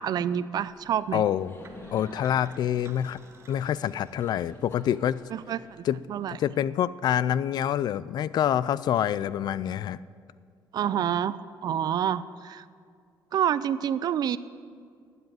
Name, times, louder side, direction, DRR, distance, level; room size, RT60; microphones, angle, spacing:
voice 1, 0.0-1.2 5.3-6.4 10.7-12.6 13.3-14.4, right 9 dB, 55° right, 17 dB, 0.5 m, -28 dB
Laughter, 0.7-6.5, left 1 dB, 30° left, 2.1 m, -50 dB
voice 2, 1.1-1.5 1.9-3.2 3.5-5.2 5.8-6.0 6.3-10.0, left 10 dB, 60° left, 19 dB, 0.4 m, -26 dB
sound 1, 1.6-4.7, right 5 dB, 35° right, 0.9 m, -54 dB
12.5 x 8.1 x 9.2 m, 2.2 s
cardioid pair, 105°, 8 cm